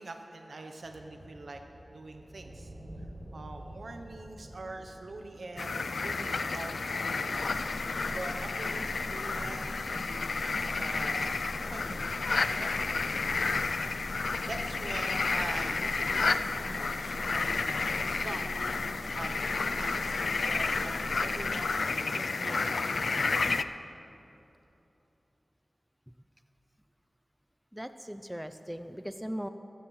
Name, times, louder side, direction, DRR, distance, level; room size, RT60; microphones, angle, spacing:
voice 1, 0.0-2.7 3.0-3.1 3.3-13.3 14.5-18.5 18.8-23.7, right 2 dB, 80° right, 4 dB, 0.7 m, -44 dB
sound 1, 0.8-18.4, right 1 dB, 40° right, 2.7 m, -52 dB
sound 2, 5.6-23.6, left 4 dB, 85° left, 0.4 m, -31 dB
sound 3, 7.3-21.5, equal, 25° right, 2.0 m, -45 dB
voice 2, 27.7-29.5, equal, 5° right, 9 dB, 0.4 m, -39 dB
20.0 x 14.5 x 3.2 m, 3.0 s
wide cardioid pair, 75°, 0 cm